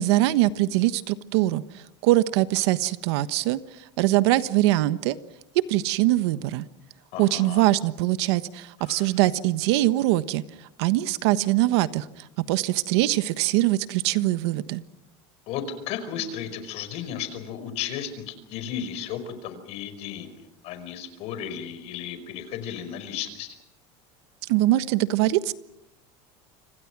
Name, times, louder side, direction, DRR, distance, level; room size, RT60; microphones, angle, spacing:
voice 1, 0.0-1.6 2.0-3.6 4.0-5.2 5.7-6.7 7.2-10.4 10.8-14.8 24.5-25.5, right 16 dB, 80° right, 13 dB, 1.3 m, -22 dB
voice 2, 7.1-7.6 8.8-9.2 15.5-23.6, left 8 dB, 50° left, 10 dB, 5.1 m, -34 dB
30.0 x 26.0 x 6.1 m, 0.83 s
cardioid pair, 165°, 14 cm